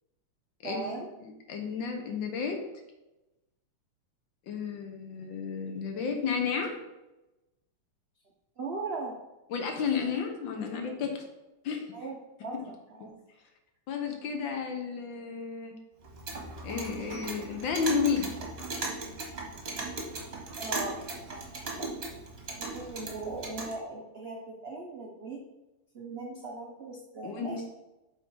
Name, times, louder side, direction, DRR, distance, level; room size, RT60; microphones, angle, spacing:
voice 1, 0.6-1.1 8.6-9.2 11.9-12.7 13.0-13.1 20.6-21.0 21.3-21.4 21.8-22.1 22.6-25.4 25.9-27.6, right 3 dB, 80° right, -1 dB, 0.5 m, -38 dB
voice 2, 1.2-2.6 4.5-6.7 9.5-11.2 11.6-11.9 13.0-13.1 13.9-15.7 16.6-18.3 27.2-27.6, left 6 dB, 70° left, 4 dB, 1.6 m, -32 dB
Clock, 16.0-23.7, right 3 dB, 35° right, 1.1 m, -38 dB
7.5 x 3.7 x 4.7 m, 1.0 s
omnidirectional pair, 2.3 m